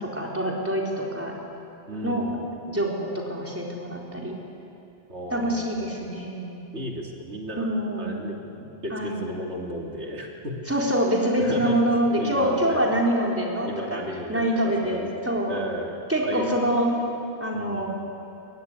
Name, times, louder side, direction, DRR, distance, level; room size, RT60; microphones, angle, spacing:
voice 1, 0.0-1.4 2.0-2.2 2.7-4.4 5.3-6.7 7.6-8.2 8.9-9.2 10.7-14.0 14.3-15.6 16.1-16.9 17.4-17.9, equal, 10° right, -2 dB, 4.1 m, -25 dB
voice 2, 1.9-2.4 5.1-6.0 6.7-10.6 11.4-11.8 12.2-12.9 13.7-16.9 17.5-17.9, right 1 dB, 80° right, 0 dB, 2.8 m, -35 dB
23.0 x 22.5 x 9.7 m, 2.8 s
omnidirectional pair, 1.1 m